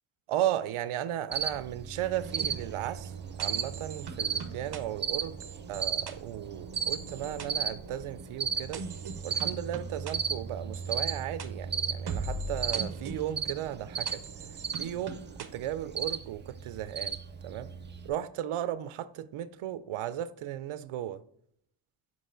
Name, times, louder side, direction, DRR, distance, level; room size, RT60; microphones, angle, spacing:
voice 1, 0.3-5.4 5.7-8.8 9.2-14.2 14.8-17.2 17.4-17.7 18.0-21.2, right 12 dB, 90° right, 0.5 m, -35 dB
Cricket, 1.3-18.1, right 6 dB, 25° right, 0.3 m, -35 dB
sound 1, 2.2-16.0, right 4 dB, 55° right, 0.8 m, -43 dB
5.4 x 5.3 x 3.7 m
wide cardioid pair, 140°, 49 cm